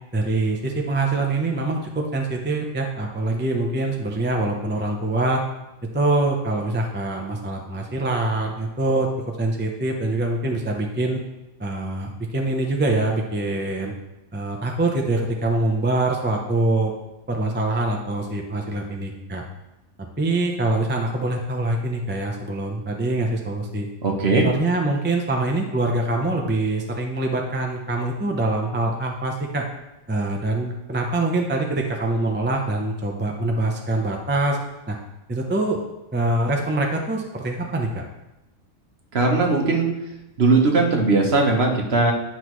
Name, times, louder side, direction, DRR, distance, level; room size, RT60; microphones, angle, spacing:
voice 1, 0.1-5.4 5.9-11.2 11.6-13.9 14.3-16.9 17.3-19.4 20.2-23.9 24.3-29.6 30.1-34.6 34.9-35.0 35.3-35.8 36.1-38.0, right 2 dB, 10° right, 1 dB, 0.5 m, -24 dB
voice 2, 24.0-24.4 39.1-39.9 40.4-42.1, right 3 dB, 50° right, 1 dB, 1.2 m, -19 dB
10.0 x 5.7 x 3.1 m, 0.96 s
omnidirectional pair, 1.5 m